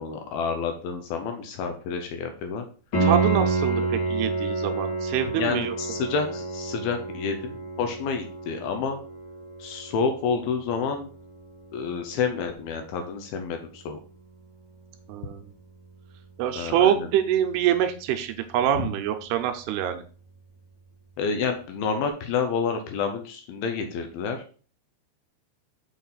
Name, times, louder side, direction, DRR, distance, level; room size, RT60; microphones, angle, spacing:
voice 1, 0.0-2.7 5.3-9.0 9.6-11.1 11.7-14.0 16.6-17.1 18.8-18.9 21.2-24.4, left 5 dB, 75° left, 6 dB, 2.4 m, -29 dB
Piano, 2.9-13.6 16.9-17.0, right 3 dB, 40° left, 2.1 m, -30 dB
voice 2, 3.0-5.8 15.1-15.5 16.4-20.0, right 10 dB, 80° right, 7 dB, 2.6 m, -25 dB
6.5 x 5.5 x 3.9 m, 0.39 s
omnidirectional pair, 4.9 m